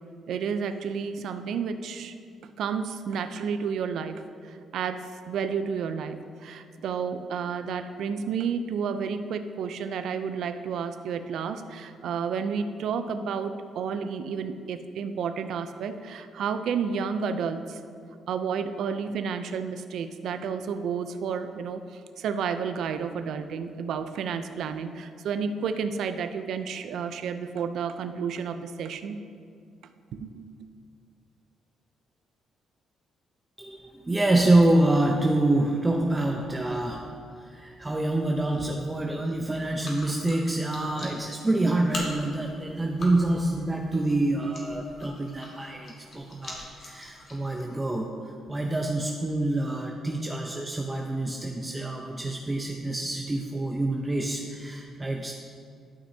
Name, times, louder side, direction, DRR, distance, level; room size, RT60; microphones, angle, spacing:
voice 1, 0.3-2.1 2.4-17.8 18.3-29.2 30.1-30.7, right 6 dB, 70° right, 10 dB, 0.5 m, -31 dB
voice 2, 33.6-55.3, right 2 dB, 20° right, 1 dB, 0.7 m, -26 dB
sound 1, 39.8-47.8, left 1 dB, 50° left, 1.9 m, -43 dB
12.5 x 6.1 x 2.8 m, 2.2 s
cardioid pair, 80°, 0 cm